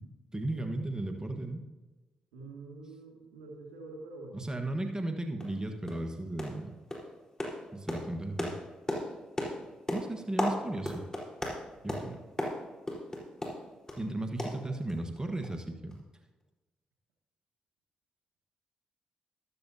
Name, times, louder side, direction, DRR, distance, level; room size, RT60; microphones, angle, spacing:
voice 1, 0.3-1.6 4.3-6.8 7.7-8.5 9.9-11.0 11.8-12.2 14.0-16.0, right 1 dB, 20° right, 4 dB, 1.4 m, -35 dB
voice 2, 2.3-4.4, right 3 dB, 85° right, -1 dB, 2.3 m, -46 dB
sound 1, 4.9-5.0 5.4-5.6 5.9-6.1 6.4-6.6 6.9-14.0 14.4-15.2 15.4-15.6 15.9-16.0, left 1 dB, 15° left, 4.2 m, -36 dB
13.5 x 12.0 x 2.8 m, 1.2 s
hypercardioid pair, 45°, 3 cm